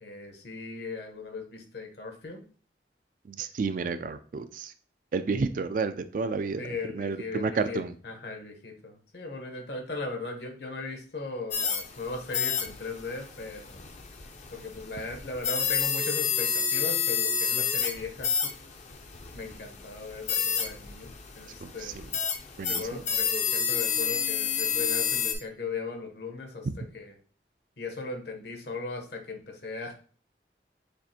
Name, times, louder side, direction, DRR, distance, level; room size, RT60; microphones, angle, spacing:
voice 1, 0.0-2.4 6.6-13.9 14.5-18.6 19.3-22.0 22.7-26.7 26.9-27.1 27.8-30.0, left 3 dB, 70° left, 3 dB, 1.0 m, -38 dB
voice 2, 3.2-4.7 5.1-7.9 21.6-22.0 22.6-23.0, right 4 dB, 50° right, 12 dB, 0.3 m, -31 dB
sound 1, 11.5-25.3, left 7 dB, 40° left, 0.5 m, -30 dB
6.5 x 2.5 x 2.8 m, 0.41 s
head